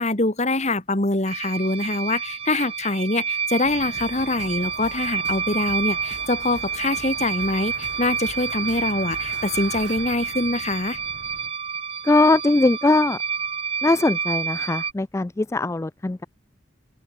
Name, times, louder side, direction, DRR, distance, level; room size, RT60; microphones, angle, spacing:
voice 1, 0.0-11.0, left 2 dB, 35° left, 2.3 m, -24 dB
sound 1, 1.3-14.9, right 7 dB, 30° right, 0.7 m, -29 dB
sound 2, 3.6-11.5, right 2 dB, 65° right, 4.8 m, -42 dB
voice 2, 12.0-13.2 13.8-16.3, left 2 dB, 15° left, 0.3 m, -20 dB
open air
head